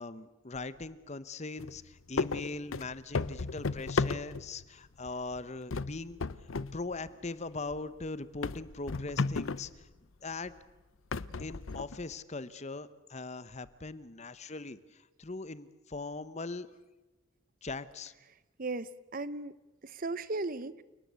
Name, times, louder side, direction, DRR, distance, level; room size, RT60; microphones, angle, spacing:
voice 1, 0.0-6.2 6.7-9.9 10.2-10.5 11.4-16.7 17.6-18.1, left 3 dB, 35° left, 15 dB, 0.9 m, -40 dB
sound 1, 1.6-1.8 2.2-4.6 5.1-5.4 5.7-6.8 7.1-7.2 7.7-7.8 8.4-9.8 10.5-10.6 11.1-12.1, left 4 dB, 85° left, 0.7 m, -34 dB
voice 2, 18.6-19.6 19.8-20.8, right 2 dB, 45° right, 17 dB, 0.8 m, -36 dB
29.0 x 19.0 x 8.2 m, 1.1 s
head